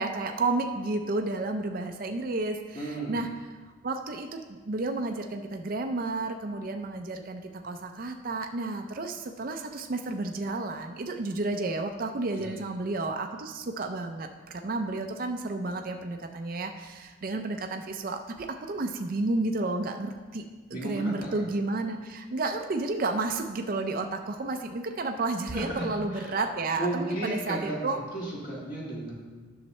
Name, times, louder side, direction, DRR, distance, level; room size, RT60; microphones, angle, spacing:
voice 1, 0.0-3.3 3.8-20.4 20.7-28.0, right 2 dB, 45° right, 4 dB, 0.5 m, -31 dB
voice 2, 2.7-3.2 12.3-12.6 20.7-21.4 25.5-26.3 26.8-29.1, right 1 dB, 45° left, -5 dB, 1.7 m, -34 dB
10.5 x 6.4 x 3.2 m, 1.4 s
head